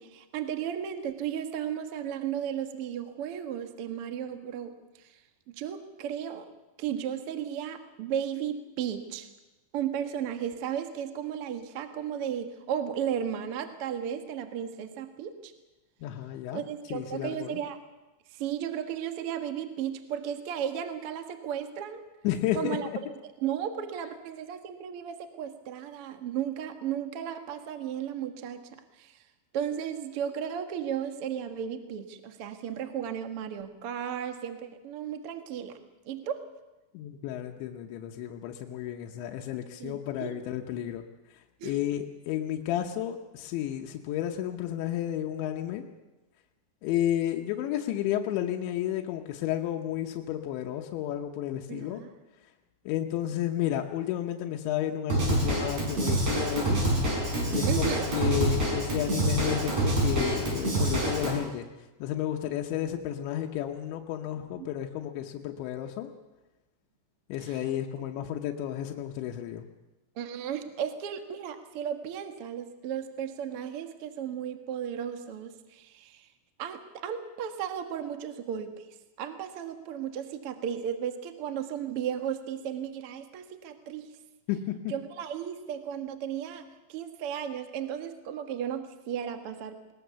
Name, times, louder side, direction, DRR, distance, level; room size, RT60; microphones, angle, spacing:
voice 1, 0.0-5.2 5.5-6.4 6.8-9.3 9.7-15.5 16.5-17.8 18.3-22.0 22.5-22.9 23.4-29.2 29.5-35.8 36.0-36.4 39.8-40.4 41.6-41.8 51.7-52.1 57.7-58.0 64.6-64.7 67.5-67.6 70.1-76.3 76.6-78.9 79.2-84.1 84.9-89.9, right 9 dB, 85° right, 7 dB, 1.2 m, -35 dB
voice 2, 16.0-16.6 16.9-17.6 22.3-23.0 36.9-41.1 41.6-45.9 46.8-52.0 52.9-57.0 57.5-61.7 62.0-66.1 67.3-69.7 84.5-84.9, left 11 dB, 85° left, 2 dB, 3.3 m, -32 dB
Drum kit / Drum, 55.1-61.3, right 1 dB, 40° right, 6.7 m, -27 dB
20.5 x 20.5 x 6.9 m, 1.1 s
omnidirectional pair, 5.1 m